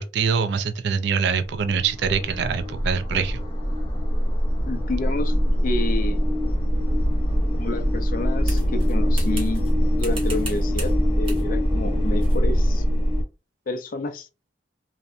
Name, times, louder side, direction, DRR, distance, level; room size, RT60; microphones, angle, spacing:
voice 1, 0.0-3.4, right 6 dB, 65° right, 0.3 m, -24 dB
sound 1, 1.3-13.2, equal, 30° left, 0.8 m, -23 dB
voice 2, 4.7-5.3 5.6-6.3 7.6-9.7 9.9-12.8 13.7-14.3, left 2 dB, 50° left, 0.4 m, -30 dB
sound 2, 8.5-9.7 10.0-11.0 11.2-11.5 12.2-12.4, right 3 dB, 30° right, 0.8 m, -38 dB
2.6 x 2.1 x 2.4 m
head